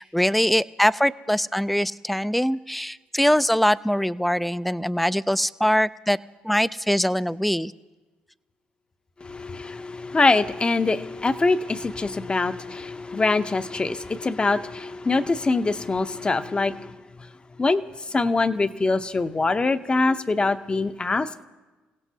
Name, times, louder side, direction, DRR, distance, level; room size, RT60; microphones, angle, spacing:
voice 1, 0.0-6.2 6.4-7.7, equal, ahead, 16 dB, 0.4 m, -22 dB
voice 2, 9.2-17.3 17.6-21.4, left 3 dB, 25° left, 11 dB, 0.7 m, -24 dB
29.0 x 16.5 x 2.8 m, 1.2 s
supercardioid pair, 70°, 4 cm